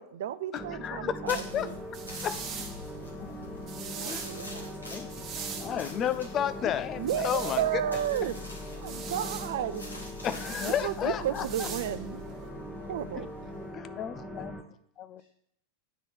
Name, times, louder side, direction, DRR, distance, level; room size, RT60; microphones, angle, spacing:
voice 1, 0.0-1.8 3.9-4.7 7.0-8.4 8.7-9.8 10.6-12.2 12.8-13.3, right 11 dB, 55° right, 13 dB, 0.4 m, -33 dB
voice 2, 0.5-1.7 2.2-2.4 3.2-3.4 4.1-4.2 4.9-5.1 5.6-7.6 8.1-8.2 9.0-9.1 10.2-11.7 13.7-14.5 15.0-15.2, left 9 dB, 30° left, 13 dB, 0.5 m, -32 dB
sound 1, 0.6-14.6, left 1 dB, ahead, 1.1 m, -41 dB
sound 2, 1.2-13.7, left 1 dB, 80° left, 1.7 m, -47 dB
sound 3, 1.5-12.5, right 6 dB, 30° right, 1.3 m, -43 dB
voice 3, 4.0-4.5 4.9-5.4 15.2-15.3, left 2 dB, 65° left, -2 dB, 1.6 m, -63 dB
9.0 x 3.9 x 6.5 m, 0.70 s
figure-of-eight pair, 90°, 0 cm